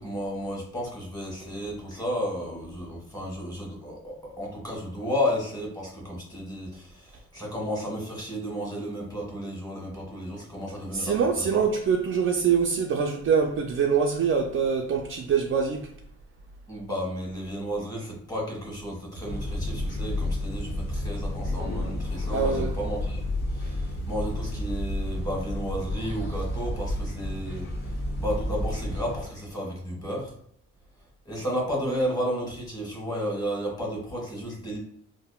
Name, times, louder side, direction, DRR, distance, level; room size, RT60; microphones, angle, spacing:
voice 1, 0.0-11.6 16.7-23.2 23.5-23.8 24.1-27.6 28.2-30.3 31.2-34.8, equal, 15° left, 1.4 m, -32 dB
voice 2, 10.9-15.9 22.3-22.7 31.9-32.0, right 6 dB, 45° right, 0.4 m, -24 dB
sound 1, 19.2-29.2, left 1 dB, 35° left, 1.0 m, -31 dB
3.5 x 2.0 x 2.3 m
cardioid pair, 90°, 30 cm